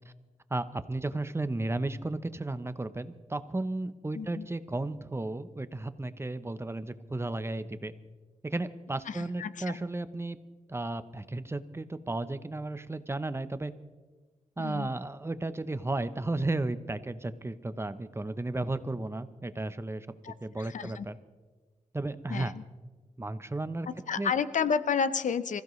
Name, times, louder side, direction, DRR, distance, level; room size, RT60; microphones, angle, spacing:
voice 1, 0.5-7.9 8.4-10.4 10.7-13.7 14.6-20.1 20.4-21.2 21.9-22.5 23.2-23.9 24.2-24.3, right 2 dB, 20° right, 12 dB, 0.7 m, -34 dB
voice 2, 4.1-4.5 9.1-9.8 14.6-14.9 20.2-21.1 22.3-22.6 23.9-25.6, left 6 dB, 80° left, 13 dB, 0.6 m, -31 dB
25.5 x 15.5 x 3.1 m, 1.3 s
wide cardioid pair, 90°, 13 cm